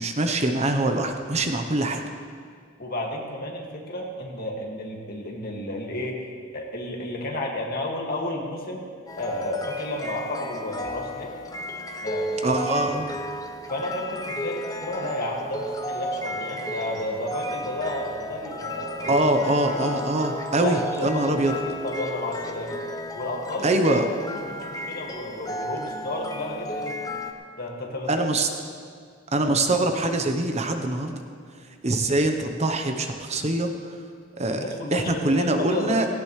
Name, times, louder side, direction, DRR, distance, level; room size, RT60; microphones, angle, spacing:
voice 1, 0.0-2.0 12.4-13.1 19.1-21.5 23.6-24.0 28.1-28.5 29.3-31.2 31.8-33.7 34.3-34.6 34.9-36.1, right 2 dB, 35° right, 5 dB, 0.9 m, -23 dB
voice 2, 2.8-6.2 6.5-8.8 9.1-11.3 12.0-12.6 12.9-13.0 13.7-19.2 19.6-19.8 20.6-22.8 23.1-24.0 24.3-27.0 27.6-28.3 34.5-36.1, left 1 dB, 50° left, -1 dB, 2.1 m, -32 dB
sound 1, 9.1-27.3, equal, 20° left, 0.9 m, -33 dB
17.5 x 16.5 x 3.3 m, 2.1 s
head